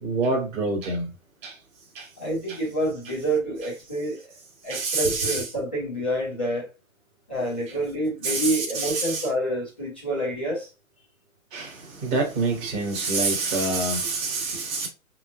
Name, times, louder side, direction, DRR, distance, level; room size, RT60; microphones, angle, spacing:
voice 1, 0.0-1.1 1.4-1.5 2.0-2.1 2.5-2.6 4.7-5.4 8.2-9.3 11.5-14.9, right 3 dB, 15° right, 0.8 m, -26 dB
voice 2, 2.2-4.2 4.6-6.7 7.3-10.7, right 1 dB, 10° left, 0.4 m, -28 dB
5.5 x 3.0 x 2.4 m
figure-of-eight pair, 130°, 41 cm